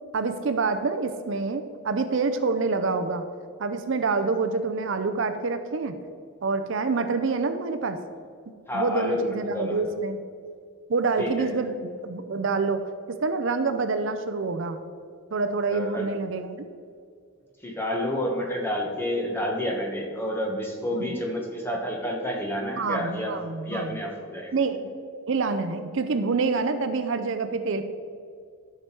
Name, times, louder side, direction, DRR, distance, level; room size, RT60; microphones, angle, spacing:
voice 1, 0.1-3.3 3.6-5.9 6.4-8.0 8.7-10.2 10.9-12.8 13.2-14.8 15.3-16.7 21.1-21.2 22.8-24.0 24.5-24.9 25.3-27.8, right 4 dB, 60° right, 9 dB, 0.5 m, -27 dB
voice 2, 8.7-9.8 11.2-11.7 15.7-16.1 17.6-24.5, equal, 10° left, 0 dB, 1.2 m, -29 dB
12.0 x 6.0 x 4.5 m, 2.3 s
head